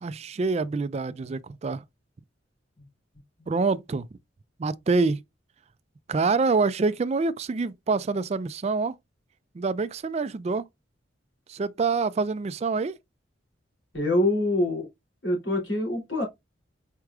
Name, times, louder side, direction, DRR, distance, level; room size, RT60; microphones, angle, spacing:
voice 1, 0.0-1.8 3.5-4.1 4.6-5.2 6.1-8.9 9.5-10.6 11.5-13.0, right 4 dB, 35° right, 0.3 m, -26 dB
voice 2, 13.9-14.9 15.2-16.2, left 1 dB, 85° left, 3.0 m, -25 dB
4.7 x 4.5 x 2.4 m
head